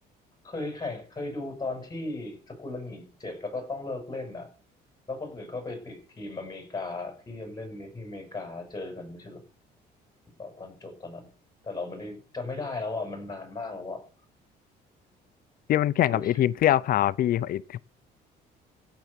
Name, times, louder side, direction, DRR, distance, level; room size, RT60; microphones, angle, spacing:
voice 1, 0.4-4.5 5.1-9.4 10.4-11.3 11.6-14.0 16.0-16.4, left 3 dB, 25° left, 6.7 m, -36 dB
voice 2, 15.7-17.8, left 12 dB, 60° left, 0.6 m, -23 dB
15.5 x 7.2 x 8.2 m
cardioid pair, 110°, 17 cm